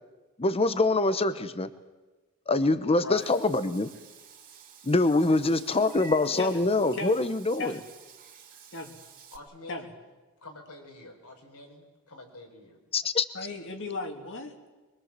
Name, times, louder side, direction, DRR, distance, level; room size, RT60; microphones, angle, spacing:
voice 1, 0.4-1.7 2.5-3.9 4.8-7.8 12.9-13.2, left 2 dB, 25° left, 13 dB, 0.8 m, -24 dB
Meow / Water / Bathtub (filling or washing), 3.2-9.4, right 6 dB, 40° right, 3.1 m, -50 dB
voice 2, 9.3-9.9 10.4-12.8, left 2 dB, 85° left, 3 dB, 4.9 m, -48 dB
voice 3, 13.3-14.5, left 3 dB, 60° left, 4 dB, 2.8 m, -36 dB
24.0 x 23.0 x 7.5 m, 1.2 s
head